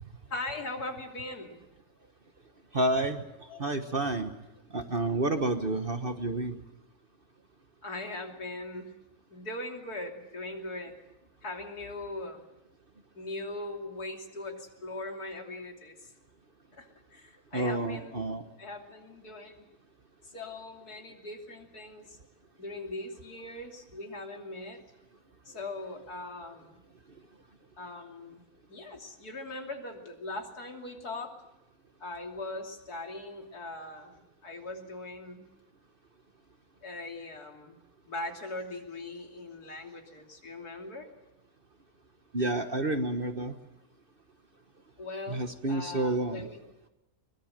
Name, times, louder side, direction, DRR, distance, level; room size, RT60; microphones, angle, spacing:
voice 1, 0.3-1.6 3.5-3.7 7.8-8.9 9.3-11.0 11.4-12.4 13.2-16.1 16.7-18.2 18.6-19.7 20.2-22.2 22.6-24.8 25.5-26.8 27.8-28.4 28.7-31.3 32.0-35.5 36.8-37.8 38.1-41.1 45.0-46.6, left 2 dB, 80° left, 3 dB, 3.5 m, -40 dB
voice 2, 2.7-3.2 3.6-4.3 4.7-6.6 17.5-18.4 42.3-43.5 45.3-46.5, right 2 dB, 40° right, 8 dB, 1.4 m, -29 dB
23.5 x 22.0 x 7.5 m, 0.95 s
omnidirectional pair, 1.6 m